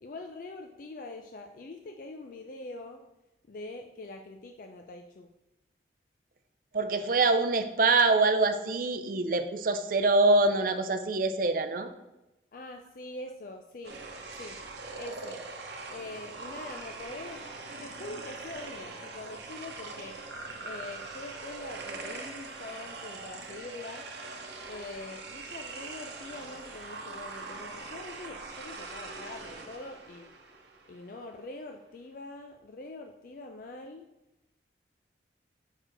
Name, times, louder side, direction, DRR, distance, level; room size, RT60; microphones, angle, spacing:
voice 1, 0.0-3.0 3.5-5.3 12.5-14.0 14.4-14.6 15.0-15.4 15.9-17.4 17.8-20.2 20.6-24.1 24.7-30.3 30.9-34.0, left 2 dB, 50° left, 4 dB, 0.4 m, -44 dB
voice 2, 6.7-11.9, right 3 dB, 50° right, 8 dB, 0.5 m, -25 dB
sound 1, 13.8-31.2, right 3 dB, 65° right, 0.9 m, -42 dB
6.1 x 4.5 x 4.5 m, 0.97 s
head